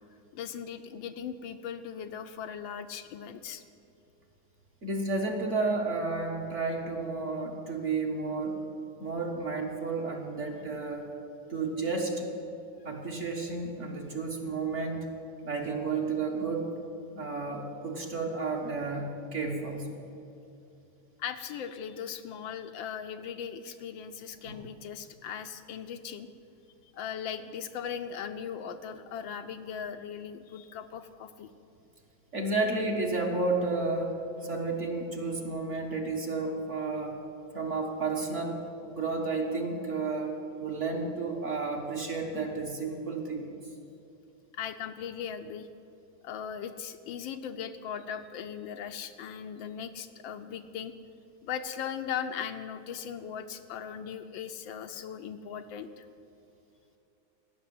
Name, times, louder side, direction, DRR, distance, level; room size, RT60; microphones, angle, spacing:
voice 1, 0.3-3.6 21.2-26.3 26.8-31.5 44.5-45.7 46.2-50.9 51.4-56.1, left 8 dB, 75° left, 8 dB, 1.4 m, -38 dB
voice 2, 4.8-8.6 9.0-11.1 11.5-12.3 12.8-15.1 15.4-16.7 17.1-19.9 24.5-24.6 32.3-34.1 34.4-37.2 37.5-40.3 40.6-43.5, right 3 dB, 40° right, 0 dB, 1.6 m, -32 dB
16.5 x 6.6 x 9.3 m, 2.8 s
omnidirectional pair, 2.2 m